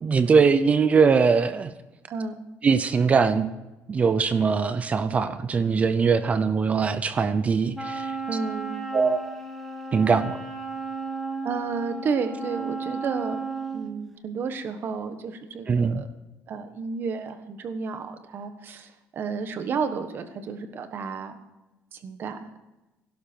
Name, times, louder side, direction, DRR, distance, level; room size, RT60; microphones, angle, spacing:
voice 1, 0.0-1.7 2.6-3.5 3.9-8.1 8.9-9.2 9.9-10.4 15.7-16.0, right 5 dB, 25° right, 12 dB, 0.6 m, -21 dB
Wind instrument woodwind instrument, 7.7-13.9, right 3 dB, ahead, 1.6 m, -33 dB
voice 2, 8.3-8.8 11.4-13.4 13.7-16.1 16.5-21.4 21.9-22.4, right 5 dB, 40° right, 9 dB, 1.3 m, -31 dB
17.0 x 11.5 x 4.5 m, 1.0 s
cardioid pair, 175°, 6 cm